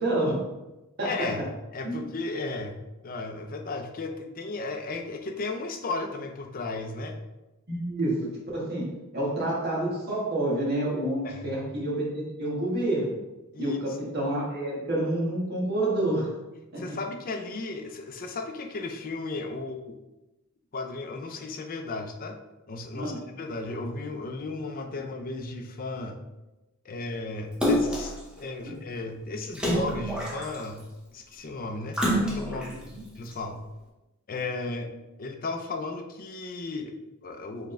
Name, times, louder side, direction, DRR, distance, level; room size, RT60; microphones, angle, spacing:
voice 1, 0.0-0.4 1.0-1.1 1.8-2.0 7.7-8.2 8.5-8.9 9.1-13.1 13.6-16.3 16.7-16.8 22.9-23.2 28.6-28.7 32.9-33.0, right 1 dB, 45° right, -5 dB, 1.4 m, -28 dB
voice 2, 1.0-1.4 1.7-2.8 3.0-7.2 11.2-11.6 13.5-13.8 16.8-20.0 20.7-22.4 22.7-26.2 26.8-30.9 31.1-32.8 33.2-33.6 34.3-37.7, left 3 dB, 40° left, 5 dB, 0.5 m, -35 dB
Splash splatter, 27.6-28.2 29.5-30.8 31.9-32.7 33.3-33.4, equal, 5° right, 0.7 m, -26 dB
4.5 x 3.5 x 3.2 m, 1.0 s
head